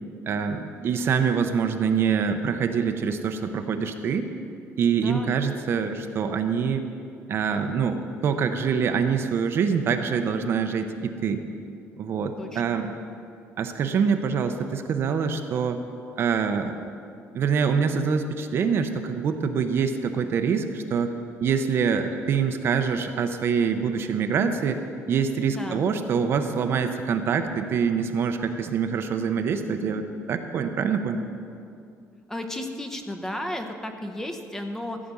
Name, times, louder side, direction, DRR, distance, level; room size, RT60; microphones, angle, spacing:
voice 1, 0.3-4.3 4.8-6.8 7.3-11.4 12.0-12.9 13.6-15.8 16.2-16.7 17.3-21.1 21.4-24.8 25.1-31.3, right 6 dB, 50° right, 7 dB, 0.7 m, -25 dB
voice 2, 4.9-5.3 12.4-12.8 25.5-25.8 32.3-35.0, left 1 dB, 10° left, 6 dB, 0.8 m, -34 dB
15.0 x 5.1 x 8.4 m, 2.4 s
cardioid pair, 150°, 5 cm